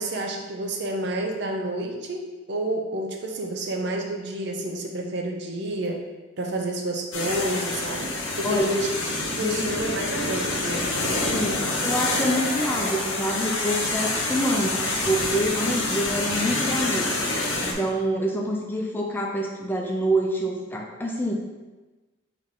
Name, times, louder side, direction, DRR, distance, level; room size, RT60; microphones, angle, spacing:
voice 1, 0.0-6.0 6.4-8.1 8.4-8.9 9.4-10.9, right 1 dB, 55° right, 2 dB, 0.6 m, -29 dB
sound 1, 7.1-17.7, left 2 dB, 75° left, 0.8 m, -27 dB
voice 2, 9.4-9.7 11.3-17.2 17.6-21.3, equal, 10° left, -1 dB, 0.5 m, -26 dB
3.8 x 3.2 x 3.7 m, 1.2 s
head